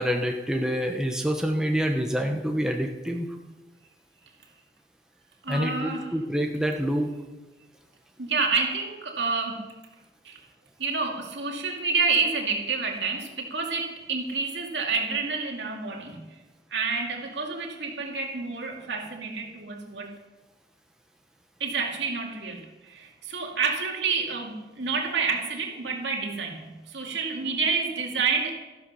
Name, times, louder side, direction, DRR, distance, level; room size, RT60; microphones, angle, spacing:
voice 1, 0.0-3.3 5.5-7.1, equal, 5° right, 2 dB, 1.0 m, -27 dB
voice 2, 5.4-6.2 8.2-9.8 10.2-10.4 10.8-16.3 16.7-20.1 21.6-28.5, right 4 dB, 75° right, 1 dB, 2.3 m, -29 dB
13.5 x 12.0 x 5.7 m, 1.1 s
head